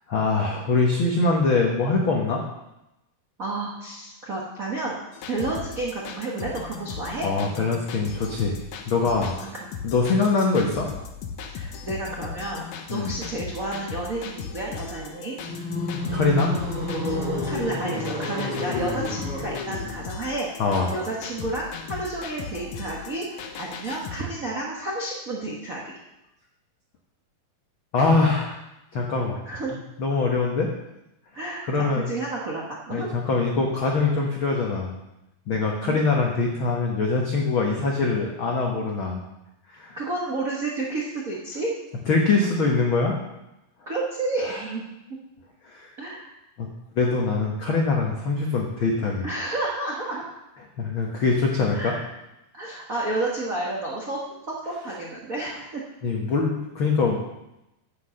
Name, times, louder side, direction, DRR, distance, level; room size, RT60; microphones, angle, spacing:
voice 1, 0.1-2.4 7.2-9.4 9.8-10.9 12.9-13.1 15.9-16.7 20.6-20.9 27.9-28.6 28.9-29.4 30.0-30.7 31.6-32.1 32.9-34.9 35.5-39.2 39.7-40.0 42.1-43.2 44.4-44.6 45.6-45.9 46.6-46.7 47.0-49.3 50.8-51.9 56.0-57.2, left 3 dB, 85° left, 0 dB, 1.1 m, -23 dB
voice 2, 3.4-5.0 5.3-7.3 9.4-9.7 11.5-12.6 12.9-15.4 17.5-25.9 29.4-29.7 31.3-33.1 35.8-36.0 40.0-41.7 43.9-44.8 46.0-46.3 49.2-50.2 51.6-52.0 52.5-54.2 54.5-55.8, right 2 dB, 65° right, -4 dB, 0.8 m, -31 dB
sound 1, 5.1-24.2, left 6 dB, 70° left, 1.8 m, -38 dB
sound 2, 15.4-20.0, left 2 dB, 45° right, 4.6 m, -29 dB
9.6 x 7.9 x 6.5 m, 0.92 s
omnidirectional pair, 4.2 m